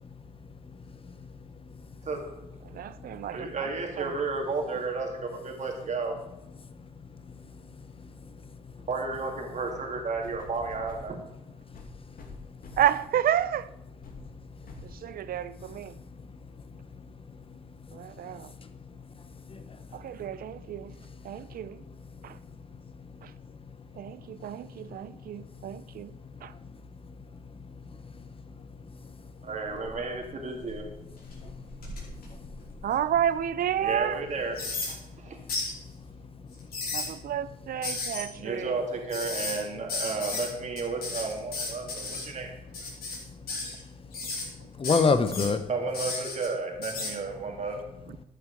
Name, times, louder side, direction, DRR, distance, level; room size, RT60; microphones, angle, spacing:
voice 1, 0.0-2.0 2.7-3.2 6.8-8.9 11.7-12.6 14.1-14.7 15.1-15.2 16.0-20.1 20.4-20.5 21.0-29.2 31.3-32.6 35.4-37.2 43.1-45.6, left 4 dB, 35° left, 0.9 m, -37 dB
voice 2, 2.0-2.4 3.1-6.2 8.9-11.2 29.4-30.9 33.8-35.4 38.4-42.5 45.7-47.8, right 4 dB, 50° right, 2.2 m, -33 dB
voice 3, 2.7-3.5 4.0-4.1 12.8-13.7 14.8-16.0 17.9-18.5 19.9-21.0 21.2-21.8 22.2-22.4 23.2-23.3 23.9-26.5 32.8-34.2 36.9-38.8, right 10 dB, 70° right, 0.6 m, -31 dB
sound 1, 10.2-11.1 11.7-13.0 13.5-13.7 14.0-14.3 14.7-15.0 15.7-15.8, left 3 dB, 65° left, 1.9 m, -45 dB
sound 2, 29.7-30.1 30.6-33.2 33.7-33.8 34.5-34.9 35.5-35.7 36.5-37.1 37.8-38.2 39.1-39.6 39.9-40.5 40.8-42.2 42.7-43.2 43.5-43.8 44.1-44.4 44.8-45.5 45.9-46.5 46.8-47.1, left 3 dB, 90° left, 4.8 m, -34 dB
12.5 x 8.3 x 5.2 m
cardioid pair, 95°, 16 cm